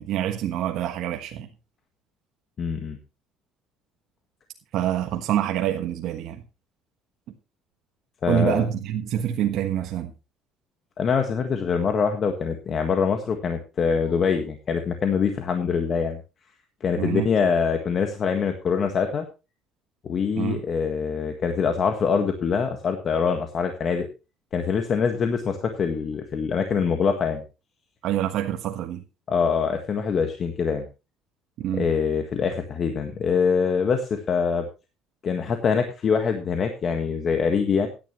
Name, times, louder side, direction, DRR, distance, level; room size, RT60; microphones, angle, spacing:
voice 1, 0.0-1.5 4.7-6.4 8.3-10.1 17.0-17.3 20.4-20.6 28.0-29.0 31.6-31.9, right 11 dB, 65° right, 1.3 m, -26 dB
voice 2, 2.6-3.0 8.2-8.7 11.0-16.2 16.8-19.2 20.0-24.1 24.5-27.4 29.3-30.9 31.7-34.7 35.2-37.9, left 6 dB, 45° left, 1.6 m, -24 dB
16.5 x 10.5 x 3.1 m
cardioid pair, 105°, 0 cm